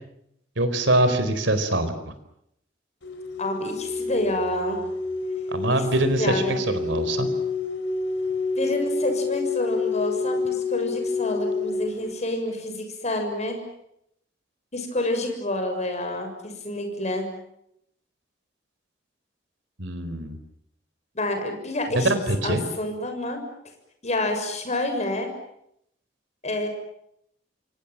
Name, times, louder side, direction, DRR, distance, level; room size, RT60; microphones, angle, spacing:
voice 1, 0.6-1.9 5.5-7.3 19.8-20.4 21.9-22.6, right 1 dB, 70° right, 10 dB, 4.4 m, -23 dB
sound 1, 3.0-12.1, left 3 dB, 70° left, 4.2 m, -28 dB
voice 2, 3.4-4.8 6.1-6.6 8.6-13.6 14.7-17.3 21.1-22.1 22.4-23.4 24.0-25.3 26.4-26.7, left 1 dB, 40° left, 5 dB, 6.8 m, -28 dB
28.0 x 25.0 x 7.5 m, 0.75 s
head